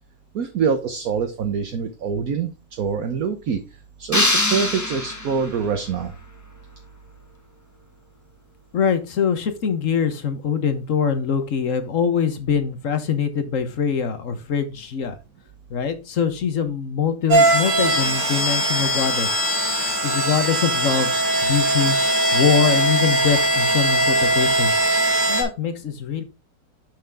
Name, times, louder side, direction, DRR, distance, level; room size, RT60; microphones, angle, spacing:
voice 1, 0.3-3.6 4.0-6.1, right 6 dB, 60° right, 6 dB, 1.3 m, -25 dB
sound 1, 4.1-5.7, left 1 dB, 10° left, 1.0 m, -22 dB
voice 2, 8.7-15.1 15.7-19.7 20.0-21.1 21.4-22.0 22.3-24.8 25.3-26.2, left 7 dB, 50° left, 10 dB, 1.3 m, -23 dB
sound 2, 17.3-25.4, right 1 dB, 80° right, 3.9 m, -20 dB
6.7 x 6.2 x 3.5 m, 0.31 s
omnidirectional pair, 1.9 m